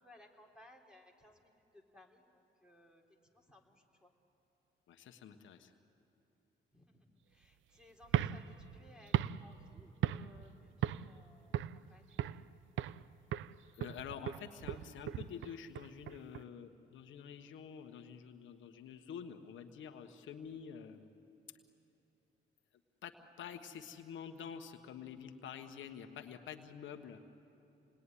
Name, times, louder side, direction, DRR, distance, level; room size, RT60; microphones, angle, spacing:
voice 1, 0.0-3.0 3.3-4.1 6.7-10.5 10.8-11.6 11.9-12.4, left 1 dB, 5° right, 1 dB, 3.6 m, -62 dB
voice 2, 4.9-5.7 13.7-21.1 23.0-27.2, left 7 dB, 75° left, 6 dB, 1.3 m, -48 dB
sound 1, 8.0-10.5 10.8-11.2 11.5-12.5 12.8-13.1 13.3-16.4, right 12 dB, 75° right, 0.5 m, -37 dB
27.5 x 20.0 x 9.9 m, 2.9 s
cardioid pair, 90°, 20 cm